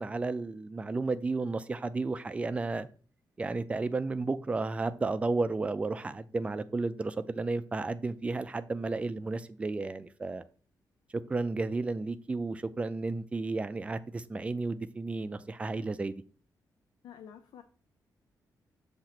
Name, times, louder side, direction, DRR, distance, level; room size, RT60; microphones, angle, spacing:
voice 1, 0.0-2.9 3.4-10.4 11.3-16.2, right 3 dB, 15° right, 0.3 m, -33 dB
voice 2, 17.0-17.6, left 8 dB, 90° left, 0.5 m, -49 dB
7.2 x 2.9 x 5.8 m
wide cardioid pair, 180°, 7 cm